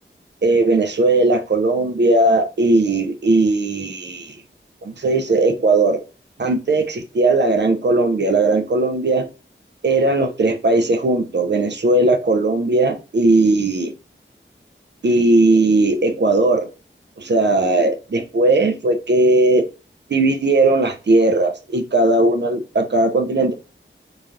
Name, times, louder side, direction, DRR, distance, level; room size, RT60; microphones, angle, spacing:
voice 1, 0.4-4.4 4.8-6.0 6.4-9.3 9.8-13.9 15.0-16.7 17.2-19.7 20.1-23.5, right 2 dB, 60° right, 0.5 m, -17 dB
3.2 x 2.3 x 2.4 m
wide cardioid pair, 60°, 21 cm